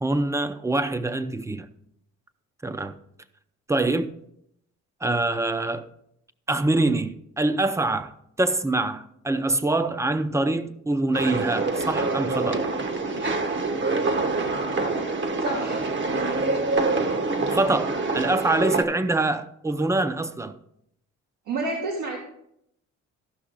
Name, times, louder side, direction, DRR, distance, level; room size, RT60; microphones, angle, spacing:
voice 1, 0.0-1.7 2.6-3.0 3.7-4.1 5.0-5.9 6.5-8.1 8.4-12.7 17.5-20.6, right 2 dB, 10° right, 0.6 m, -25 dB
sound 1, 11.1-18.8, right 3 dB, 40° right, 1.1 m, -26 dB
voice 2, 15.4-15.9 21.5-22.2, right 2 dB, 85° right, 1.9 m, -29 dB
14.0 x 5.9 x 3.9 m
cardioid pair, 90°, 30 cm